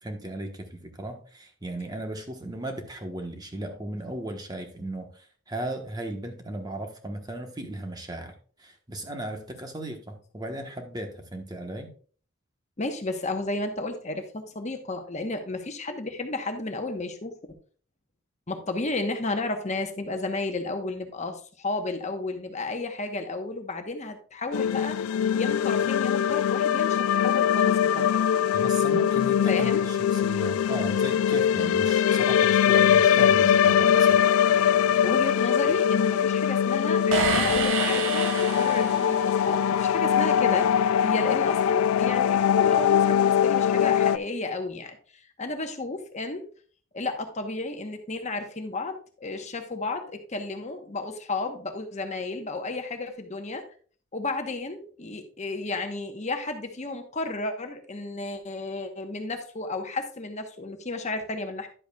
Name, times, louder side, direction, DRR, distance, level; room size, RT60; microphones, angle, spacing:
voice 1, 0.0-8.3 8.6-11.9 28.5-34.3, right 1 dB, 20° right, 4 dB, 1.1 m, -36 dB
voice 2, 12.8-17.4 18.5-28.1 29.5-29.8 35.0-45.0 45.4-46.5 46.9-53.6 54.1-61.7, left 2 dB, 35° left, 6 dB, 1.0 m, -32 dB
sound 1, 24.5-44.2, left 9 dB, 85° left, 0.3 m, -22 dB
sound 2, 37.1-39.3, right 5 dB, 65° right, 1.1 m, -28 dB
11.0 x 7.8 x 2.3 m, 0.42 s
head